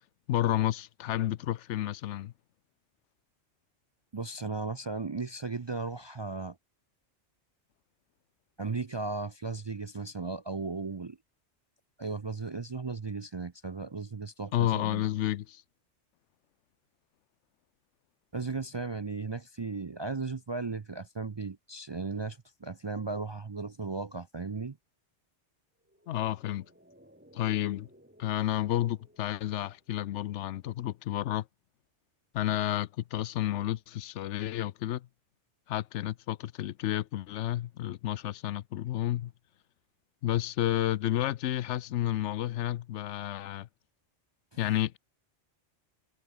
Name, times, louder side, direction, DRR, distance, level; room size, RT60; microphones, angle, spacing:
voice 1, 0.3-2.3 14.5-15.6 26.1-26.7 27.3-27.9 28.2-31.5 32.3-35.1 35.7-39.3 40.2-43.7 44.6-45.0, left 13 dB, 80° left, 0.9 m, -31 dB
voice 2, 4.1-6.6 8.6-11.2 12.0-15.1 18.3-24.8 44.5-44.6, right 4 dB, 35° right, 0.4 m, -36 dB
sound 1, 25.8-30.4 30.6-30.7, equal, 10° right, 4.0 m, -59 dB
omnidirectional pair, 1.2 m